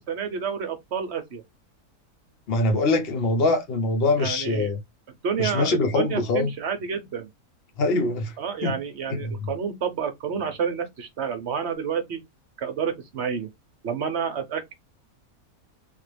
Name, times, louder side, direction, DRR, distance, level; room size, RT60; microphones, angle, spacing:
voice 1, 0.0-1.4 4.2-4.7 5.2-7.3 8.4-12.2 12.6-13.5 13.8-14.7, right 7 dB, 55° right, 0.9 m, -29 dB
voice 2, 2.5-4.8 5.4-6.5 7.8-8.3 8.6-8.8 9.1-9.3, left 2 dB, 45° left, 0.9 m, -23 dB
3.5 x 2.4 x 3.3 m
omnidirectional pair, 1.6 m